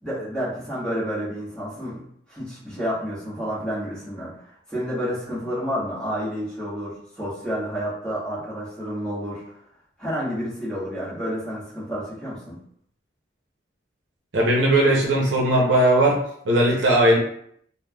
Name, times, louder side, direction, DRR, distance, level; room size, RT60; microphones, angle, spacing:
voice 1, 0.0-2.0 2.3-4.4 4.7-9.6 10.0-12.6, equal, 5° left, -10 dB, 1.2 m, -30 dB
voice 2, 14.3-16.2 16.4-17.2, right 1 dB, 70° right, -3 dB, 0.7 m, -18 dB
3.3 x 2.2 x 2.2 m, 0.67 s
head